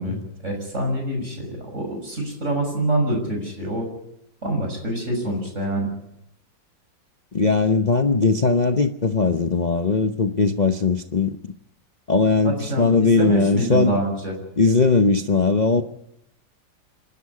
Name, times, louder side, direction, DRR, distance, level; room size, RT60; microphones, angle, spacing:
voice 1, 0.0-3.9 4.4-5.9 12.4-14.3, right 1 dB, 40° right, 2 dB, 6.6 m, -26 dB
voice 2, 7.3-11.3 12.1-13.9 14.6-15.8, left 4 dB, 45° left, 6 dB, 0.5 m, -19 dB
27.0 x 12.5 x 9.7 m, 0.82 s
omnidirectional pair, 2.0 m